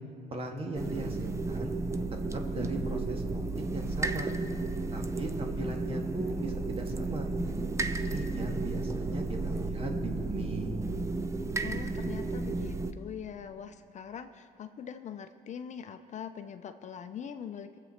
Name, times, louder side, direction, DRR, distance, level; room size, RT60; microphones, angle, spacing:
voice 1, 0.3-1.7 2.3-3.4 3.7-4.3 4.9-10.8, right 1 dB, 35° right, 2 dB, 1.7 m, -38 dB
sound 1, 0.7-12.9, right 3 dB, 15° right, 0.6 m, -33 dB
voice 2, 11.6-17.8, left 8 dB, 45° left, 8 dB, 0.6 m, -42 dB
22.5 x 7.7 x 4.3 m, 2.6 s
cardioid pair, 110°, 17 cm